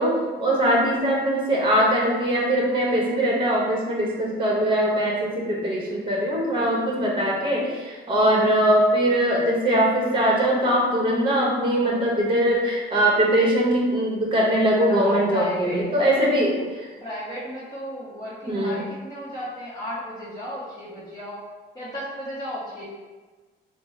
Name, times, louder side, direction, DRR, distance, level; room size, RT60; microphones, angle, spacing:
voice 1, 0.0-16.9 18.5-18.8, right 1 dB, 25° right, -2 dB, 0.9 m, -21 dB
voice 2, 14.8-16.2 17.0-21.4 21.7-22.8, equal, 20° left, -10 dB, 1.0 m, -35 dB
3.6 x 2.0 x 3.7 m, 1.3 s
cardioid pair, 90°, 20 cm